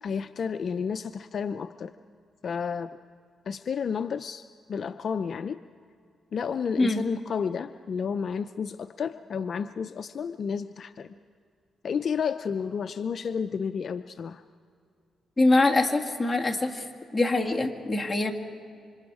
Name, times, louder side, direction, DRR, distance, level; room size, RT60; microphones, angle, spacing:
voice 1, 0.0-1.9 2.4-3.0 3.5-5.6 6.3-11.1 11.8-14.4, left 6 dB, 55° left, 10 dB, 0.5 m, -31 dB
voice 2, 15.4-16.8 17.1-18.3, left 2 dB, 15° left, 0 dB, 2.2 m, -23 dB
28.0 x 26.0 x 4.8 m, 2.4 s
cardioid pair, 85°, 0 cm